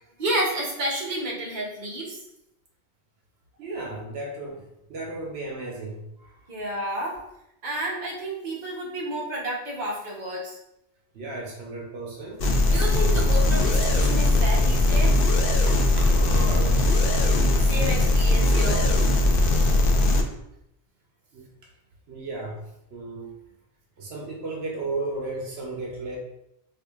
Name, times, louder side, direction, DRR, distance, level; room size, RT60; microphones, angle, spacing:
voice 1, 0.2-2.3 6.5-7.2 7.6-10.6 12.7-15.2 17.6-18.9, right 1 dB, 50° right, -4 dB, 1.0 m, -30 dB
voice 2, 3.6-6.5 11.1-12.5 15.7-17.0 21.3-21.4 22.1-22.6 22.9-23.3 24.0-26.2, right 2 dB, 80° right, -2 dB, 1.0 m, -34 dB
sound 1, 12.4-20.2, left 2 dB, 65° left, 0.7 m, -20 dB
4.7 x 2.6 x 2.4 m, 0.82 s
omnidirectional pair, 1.1 m